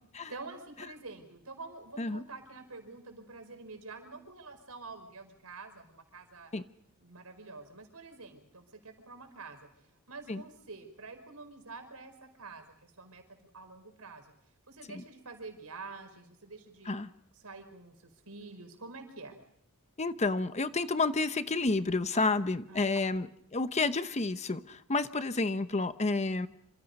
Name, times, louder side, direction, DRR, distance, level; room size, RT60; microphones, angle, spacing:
voice 1, 0.3-6.5 7.0-9.7 10.1-14.3 14.7-16.9 17.3-19.4 22.1-22.3 22.7-22.8, right 3 dB, 80° right, 6 dB, 5.0 m, -47 dB
voice 2, 20.0-23.3 23.5-26.5, left 3 dB, 30° left, 11 dB, 0.9 m, -30 dB
27.5 x 27.0 x 5.4 m, 0.69 s
head